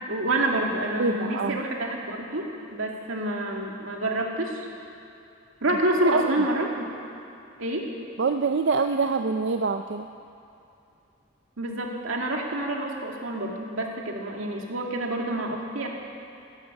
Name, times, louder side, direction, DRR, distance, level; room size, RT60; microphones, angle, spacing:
voice 1, 0.1-4.7 5.6-6.8 7.6-7.9 11.6-15.9, right 1 dB, 85° right, 0 dB, 2.2 m, -28 dB
voice 2, 1.0-1.6 6.1-6.3 8.2-10.1, right 4 dB, 60° right, 6 dB, 0.5 m, -25 dB
16.0 x 11.5 x 7.1 m, 2.7 s
head